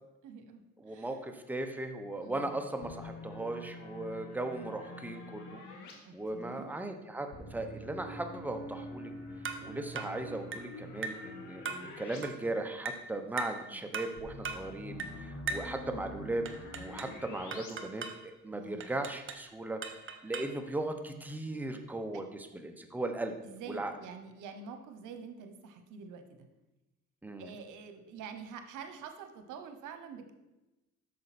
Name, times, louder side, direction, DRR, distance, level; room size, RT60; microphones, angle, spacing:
voice 1, 0.2-1.2 2.2-2.6 6.0-6.7 12.1-12.3 13.7-13.8 14.9-15.2 18.5-18.9 23.4-26.5 27.4-30.3, right 6 dB, 90° right, 7 dB, 1.0 m, -47 dB
voice 2, 0.8-5.6 6.1-9.1 9.6-16.4 16.7-19.8 20.2-23.3 23.7-23.9 27.2-27.5, right 2 dB, 5° right, 5 dB, 0.9 m, -37 dB
sound 1, 2.8-5.9 7.3-12.2 12.5-12.6 14.2-17.7, left 1 dB, 80° left, 1.8 m, -46 dB
sound 2, 9.4-9.7 10.0-10.2 10.5-10.7 11.0-11.3 11.7-11.9 12.2-12.4 12.9-13.1 13.4-13.6 13.9-14.2 14.4-14.7 15.0-15.2 15.5-15.7 16.5-17.2 17.5-18.2 18.8-19.5 19.8-20.6, right 5 dB, 40° right, 0.9 m, -39 dB
8.7 x 6.3 x 4.2 m, 1.0 s
cardioid pair, 90°, 30 cm